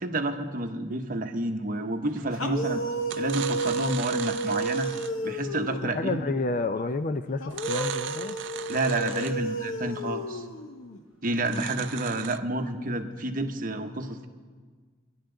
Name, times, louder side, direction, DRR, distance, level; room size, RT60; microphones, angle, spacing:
voice 1, 0.0-2.8 3.2-4.9 5.2-6.3 8.7-10.4 11.2-14.3, right 2 dB, 40° right, 6 dB, 0.9 m, -29 dB
sound 1, 2.2-2.5 3.0-5.3 7.5-9.5 11.4-12.4, right 10 dB, 60° right, 0.4 m, -38 dB
sound 2, 2.3-6.1 7.4-11.0, right 1 dB, 75° left, 0.8 m, -32 dB
voice 2, 5.8-8.4, left 3 dB, 40° left, 10 dB, 0.4 m, -30 dB
22.5 x 11.0 x 3.8 m, 1.5 s
head